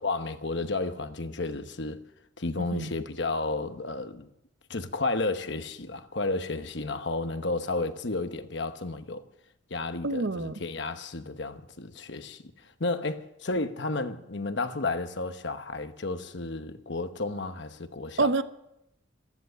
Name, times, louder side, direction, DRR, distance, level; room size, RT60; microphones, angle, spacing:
voice 1, 0.0-2.0 2.4-4.3 4.7-9.2 9.7-12.4 12.8-18.3, left 3 dB, 60° left, 1.1 m, -32 dB
voice 2, 2.6-2.9 10.0-10.5 18.2-18.4, right 3 dB, 65° right, 0.9 m, -27 dB
14.5 x 14.0 x 6.9 m
head